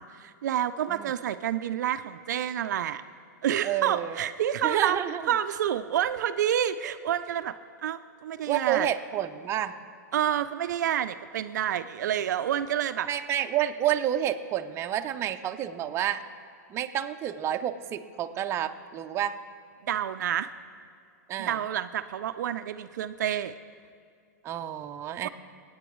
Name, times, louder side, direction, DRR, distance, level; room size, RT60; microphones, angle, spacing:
voice 1, 0.0-3.0 3.4-5.0 5.3-7.5 7.8-8.9 10.1-13.1 19.8-20.5 21.4-23.5 25.2-25.3, right 10 dB, 75° right, 11 dB, 0.4 m, -28 dB
voice 2, 3.6-4.2 4.6-5.2 8.5-9.8 13.1-16.2 16.7-19.4 21.3-21.6 24.4-25.3, right 11 dB, 25° right, 7 dB, 0.6 m, -29 dB
21.5 x 9.4 x 3.1 m, 2.4 s
hypercardioid pair, 130°, 10 cm